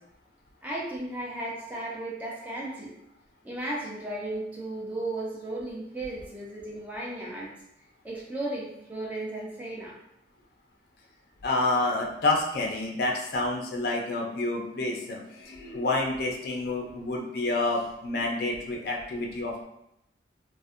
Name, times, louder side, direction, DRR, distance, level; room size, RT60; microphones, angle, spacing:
voice 1, 0.6-2.9 3.4-7.5 8.0-10.0, right 1 dB, 10° right, -5 dB, 0.4 m, -35 dB
voice 2, 11.4-19.6, left 2 dB, 55° left, 0 dB, 0.4 m, -28 dB
2.5 x 2.1 x 2.4 m, 0.81 s
head